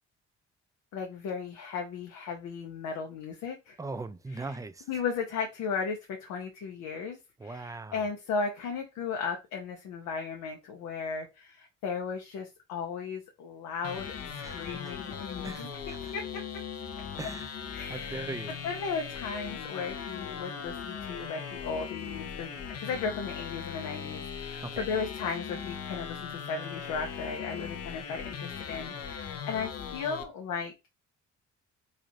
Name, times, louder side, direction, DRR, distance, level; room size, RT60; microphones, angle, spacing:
voice 1, 0.9-3.8 4.3-4.5 4.9-15.8 16.1-16.4 17.2-17.3 17.7-18.3 18.6-30.7, left 5 dB, 85° left, 0.8 m, -36 dB
voice 2, 3.8-4.9 7.4-8.0 14.4-14.9 15.4-16.2 17.2-17.5 17.9-18.5 24.6-24.9, right 3 dB, 10° right, 0.3 m, -40 dB
sound 1, 13.8-30.2, left 7 dB, 55° left, 0.8 m, -39 dB
3.2 x 2.5 x 3.9 m
cardioid pair, 90°, 30 cm